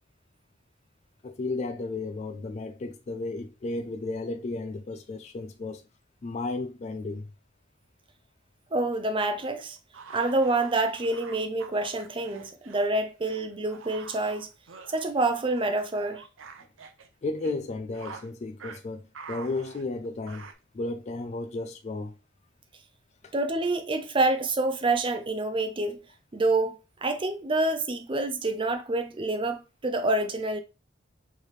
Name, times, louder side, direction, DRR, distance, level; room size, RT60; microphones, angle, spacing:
voice 1, 1.2-5.8 6.2-7.3 17.2-20.4 20.7-22.1 23.2-23.3, left 3 dB, 35° left, 0.3 m, -33 dB
voice 2, 8.7-9.8 10.1-14.5 14.9-16.2 23.3-26.0 26.3-30.6, right 2 dB, 25° right, 0.5 m, -27 dB
sound 1, 8.9-12.9 13.3-17.1 17.4-17.6 17.9-18.3 18.6-18.8 19.1-20.5, right 5 dB, 75° right, 0.6 m, -46 dB
4.6 x 3.2 x 3.1 m
head